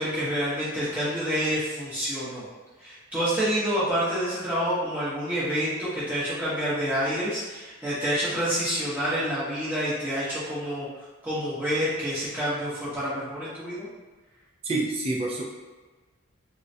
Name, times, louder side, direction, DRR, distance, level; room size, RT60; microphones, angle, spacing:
voice 1, 0.0-2.5 2.8-10.9 11.2-13.9, equal, 10° right, -11 dB, 0.8 m, -28 dB
voice 2, 14.6-15.4, right 2 dB, 25° right, -1 dB, 0.4 m, -27 dB
3.5 x 2.1 x 2.7 m, 1.3 s
head